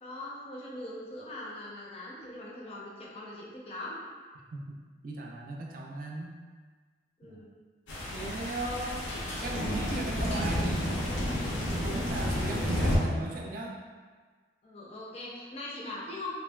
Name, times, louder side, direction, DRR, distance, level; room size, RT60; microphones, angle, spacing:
voice 1, 0.0-4.0 7.2-7.6 14.6-16.3, left 2 dB, 30° left, -5 dB, 0.5 m, -41 dB
voice 2, 5.0-6.3 7.2-7.4 8.1-11.2 11.7-13.7, right 2 dB, 45° right, -1 dB, 0.4 m, -37 dB
sound 1, 7.9-13.0, left 1 dB, 80° left, 0.6 m, -31 dB
3.0 x 2.5 x 2.2 m, 1.5 s
head